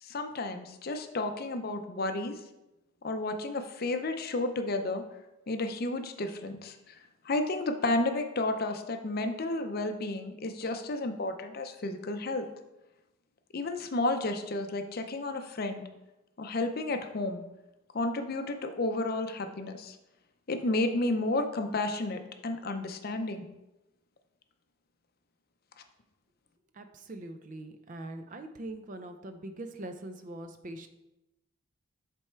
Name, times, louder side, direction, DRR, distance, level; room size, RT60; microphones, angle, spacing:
voice 1, 0.0-2.4 3.0-5.0 5.5-12.5 13.5-15.9 16.4-17.4 17.9-20.0 20.5-23.4, left 2 dB, 45° left, 7 dB, 0.5 m, -32 dB
voice 2, 26.7-30.9, right 1 dB, 35° right, 8 dB, 0.4 m, -42 dB
7.3 x 3.4 x 4.5 m, 0.95 s
head